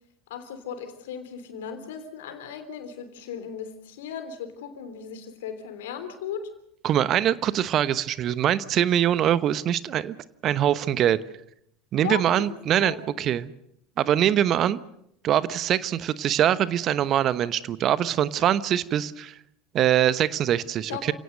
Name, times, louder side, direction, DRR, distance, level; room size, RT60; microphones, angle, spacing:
voice 1, 0.3-6.5 12.0-13.3 20.9-21.1, left 7 dB, 70° left, 9 dB, 3.4 m, -37 dB
voice 2, 6.8-10.1 10.4-11.2 11.9-13.5 14.0-14.8 15.2-19.4 19.7-21.1, right 11 dB, 45° right, 16 dB, 1.0 m, -23 dB
29.0 x 17.5 x 6.7 m, 0.75 s
hypercardioid pair, 75°, 0 cm